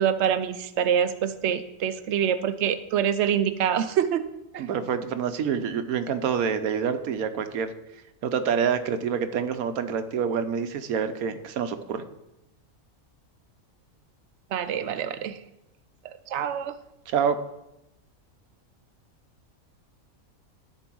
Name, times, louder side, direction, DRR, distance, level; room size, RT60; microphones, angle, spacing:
voice 1, 0.0-4.3 4.5-4.6 14.5-15.4 16.3-16.7, right 8 dB, 60° right, 11 dB, 0.9 m, -25 dB
voice 2, 4.6-7.7 8.2-12.0 17.1-17.4, right 7 dB, 90° right, 9 dB, 1.3 m, -27 dB
13.5 x 4.6 x 6.1 m, 0.90 s
omnidirectional pair, 1.5 m